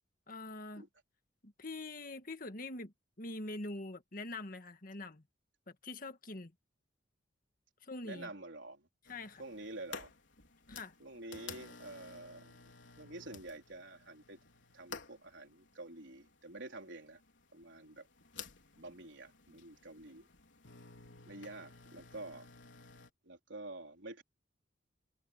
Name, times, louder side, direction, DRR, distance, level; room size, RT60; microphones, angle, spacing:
voice 1, 0.3-0.9 1.4-5.2 5.8-6.5 7.8-8.3 9.1-9.4 10.7-10.9, left 2 dB, 45° left, 1.7 m, -44 dB
voice 2, 8.0-8.9 9.4-10.1 11.0-12.7 13.0-14.4 14.7-17.2 17.5-18.1 18.8-20.3 21.3-22.5 23.2-24.2, right 2 dB, 70° right, 4.1 m, -48 dB
sound 1, 9.1-23.1, left 5 dB, 75° left, 4.0 m, -52 dB
head